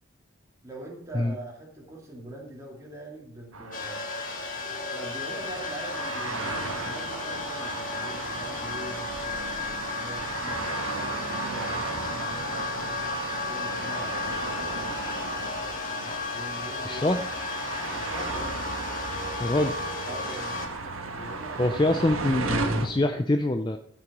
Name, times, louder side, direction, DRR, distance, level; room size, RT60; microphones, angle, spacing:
voice 1, 0.6-4.0 4.9-10.7 10.9-13.0 13.5-17.2 17.8-18.6 20.1-20.6 21.1-21.9, right 1 dB, 15° right, -2 dB, 2.4 m, -43 dB
sound 1, 3.5-22.9, right 3 dB, 80° right, 1.3 m, -35 dB
sound 2, 3.7-20.7, left 4 dB, 40° left, 1.6 m, -34 dB
voice 2, 16.8-17.2 19.4-19.7 21.6-23.8, left 1 dB, 20° left, 7 dB, 0.4 m, -25 dB
13.0 x 6.0 x 6.0 m, 0.63 s
head